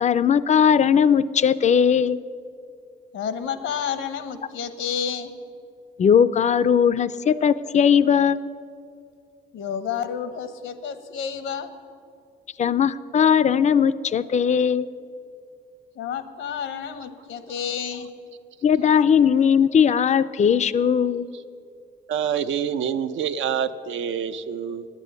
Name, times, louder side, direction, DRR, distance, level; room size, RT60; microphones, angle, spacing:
voice 1, 0.0-2.2 6.0-8.4 12.6-14.9 18.6-21.3, left 7 dB, 35° left, 16 dB, 0.4 m, -19 dB
voice 2, 3.1-5.3 9.5-11.7 15.9-18.1, left 7 dB, 80° left, 11 dB, 1.0 m, -30 dB
voice 3, 22.1-24.9, right 8 dB, 75° right, 10 dB, 0.6 m, -26 dB
9.4 x 8.4 x 9.6 m, 2.4 s
cardioid pair, 90°, 20 cm